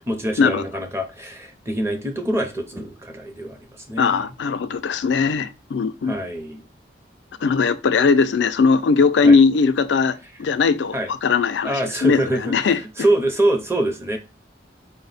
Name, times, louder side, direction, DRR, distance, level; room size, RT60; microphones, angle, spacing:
voice 1, 0.1-4.3 6.0-6.6 9.2-9.4 10.9-11.1 11.6-12.6 13.0-14.2, right 1 dB, 15° right, 0.6 m, -24 dB
voice 2, 4.0-6.1 7.4-10.9 11.2-12.8, left 5 dB, 80° left, 0.4 m, -19 dB
4.7 x 2.1 x 3.9 m
head